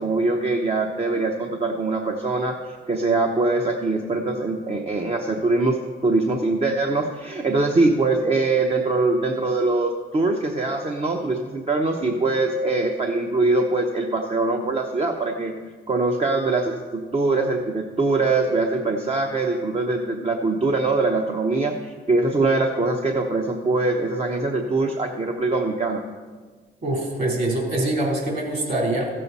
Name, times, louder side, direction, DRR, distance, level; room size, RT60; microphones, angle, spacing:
voice 1, 0.0-15.6 15.9-26.0, right 3 dB, 30° right, 2 dB, 0.9 m, -23 dB
voice 2, 26.8-29.1, right 1 dB, 50° right, -1 dB, 3.5 m, -24 dB
15.0 x 7.5 x 4.1 m, 1.5 s
cardioid pair, 90°, 20 cm